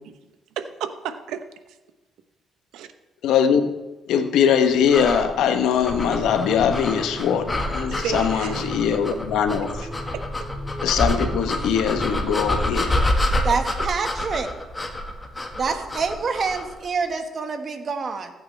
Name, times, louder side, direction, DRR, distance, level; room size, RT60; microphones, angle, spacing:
voice 1, 0.6-1.5 2.7-2.9 7.8-8.8 9.1-9.2 9.8-10.2 15.7-15.8, right 9 dB, 90° right, 0.8 m, -33 dB
voice 2, 3.2-3.7 4.1-9.9 10.8-12.9, left 7 dB, 85° left, 0.9 m, -21 dB
sound 1, 4.9-16.8, left 1 dB, 20° left, 1.5 m, -27 dB
sound 2, 5.9-12.7, equal, ahead, 0.9 m, -37 dB
voice 3, 13.4-14.5 15.6-18.3, right 5 dB, 50° right, 1.4 m, -26 dB
15.5 x 8.6 x 3.3 m
cardioid pair, 90°, 0 cm